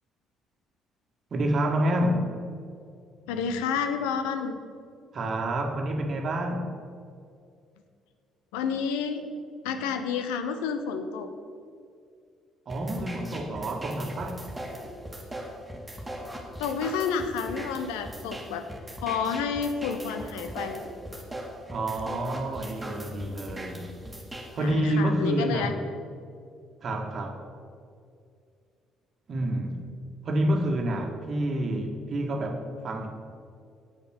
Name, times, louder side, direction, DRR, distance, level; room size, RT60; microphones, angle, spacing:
voice 1, 1.3-2.3 5.1-6.7 12.6-14.5 21.7-23.9 24.5-25.7 26.8-27.4 29.3-29.8 30.2-33.1, right 1 dB, 40° right, 3 dB, 1.6 m, -28 dB
voice 2, 3.3-4.6 8.5-9.3 9.6-11.3 16.6-18.6 19.0-20.8 24.6-25.7, left 6 dB, 65° left, 8 dB, 0.9 m, -30 dB
sound 1, 12.7-24.7, right 1 dB, 10° right, 2.2 m, -40 dB
9.1 x 8.6 x 6.3 m, 2.3 s
figure-of-eight pair, 50°, 0 cm